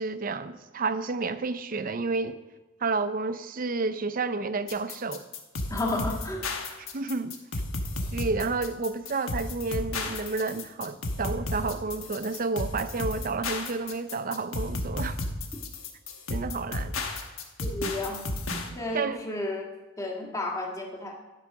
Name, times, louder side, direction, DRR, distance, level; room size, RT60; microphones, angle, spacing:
voice 1, 0.0-2.4 2.8-5.3 6.8-7.6 8.1-15.2 16.3-17.0 18.9-19.2, right 3 dB, 40° right, 0.5 m, -30 dB
sound 1, 4.7-18.7, left 2 dB, 70° left, 1.3 m, -33 dB
voice 2, 5.7-6.4 17.6-18.3 18.7-19.7 20.0-21.1, left 2 dB, 15° left, 1.6 m, -32 dB
12.0 x 5.7 x 6.0 m
head